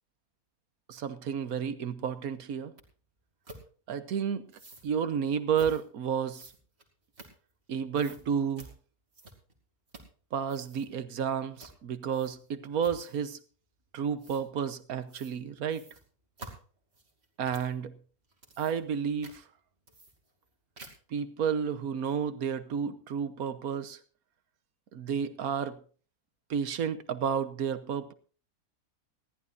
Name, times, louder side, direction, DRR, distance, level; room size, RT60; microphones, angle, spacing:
voice 1, 0.9-2.7 3.9-4.4 4.8-6.5 7.7-8.7 10.3-13.4 13.9-15.8 17.4-17.9 18.6-19.4 21.1-24.0 24.9-25.8 26.5-28.1, right 7 dB, 70° right, 12 dB, 1.5 m, -31 dB
sound 1, 2.8-2.9 3.4-3.6 4.5-4.9 5.5-5.8 6.3-7.7 8.0-8.2 8.6-8.7 9.1-9.6 9.9-10.2 10.4-10.9 11.6-11.8 12.1-12.5 12.8-13.3 14.2-14.4 15.1-15.4 15.7-17.8 18.2-19.0 19.2-19.4 19.9-20.5 20.8-21.1, right 2 dB, 45° right, 2.9 m, -50 dB
20.0 x 14.5 x 2.6 m, 0.40 s
omnidirectional pair, 1.6 m